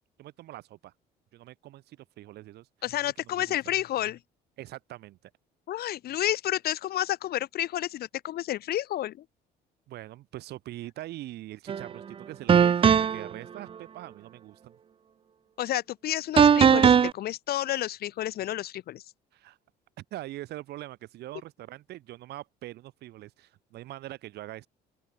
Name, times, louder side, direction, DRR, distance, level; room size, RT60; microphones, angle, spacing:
voice 1, 0.2-0.9 1.3-2.7 3.3-3.6 4.6-5.3 9.9-14.7 19.3-19.6 20.0-24.7, right 15 dB, 75° right, 4.3 m, -43 dB
voice 2, 2.8-4.2 5.7-9.2 15.6-19.0, left 13 dB, 65° left, 2.9 m, -30 dB
sound 1, 11.7-11.9 12.5-13.3 16.4-17.1, right 7 dB, 30° right, 0.6 m, -18 dB
open air
cardioid pair, 110°, 17 cm